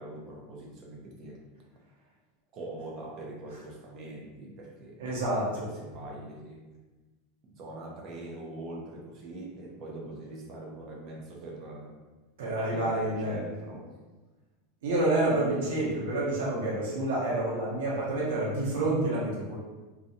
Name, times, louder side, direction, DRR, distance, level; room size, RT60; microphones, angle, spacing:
voice 1, 0.0-1.4 2.5-6.6 7.5-12.0 12.6-13.9, right 2 dB, 30° right, -1 dB, 0.4 m, -43 dB
voice 2, 5.0-5.7 12.4-13.4 14.8-19.6, right 2 dB, 85° right, -5 dB, 0.8 m, -28 dB
2.5 x 2.1 x 2.6 m, 1.2 s
supercardioid pair, 175°, 0 cm